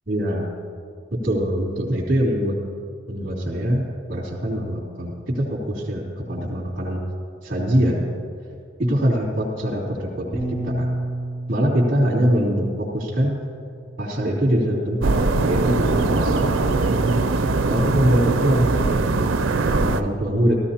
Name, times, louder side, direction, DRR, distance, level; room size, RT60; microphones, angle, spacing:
voice 1, 0.1-0.5 1.1-2.6 3.1-3.8 4.1-6.0 6.3-7.0 7.4-8.1 8.8-10.9 11.5-13.4 14.0-15.1 15.4-17.0 17.7-19.0 19.6-20.6, equal, 45° right, -4 dB, 3.0 m, -23 dB
Bass guitar, 10.3-16.6, right 1 dB, 20° left, 2.5 m, -33 dB
sound 1, 15.0-20.0, right 3 dB, 90° right, 0.6 m, -21 dB
16.5 x 14.0 x 2.9 m, 2.3 s
head